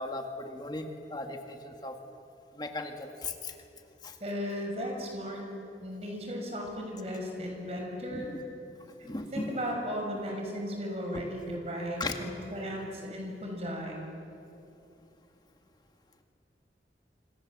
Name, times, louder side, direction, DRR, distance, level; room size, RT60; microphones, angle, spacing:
voice 1, 0.0-2.0 2.5-3.5 4.0-4.2 8.1-8.4 9.0-9.5 12.0-12.1, left 2 dB, 25° left, 4 dB, 1.8 m, -37 dB
voice 2, 4.2-5.5 5.8-8.3 9.3-14.0, equal, 35° right, 1 dB, 6.0 m, -36 dB
26.5 x 26.5 x 7.5 m, 2.8 s
head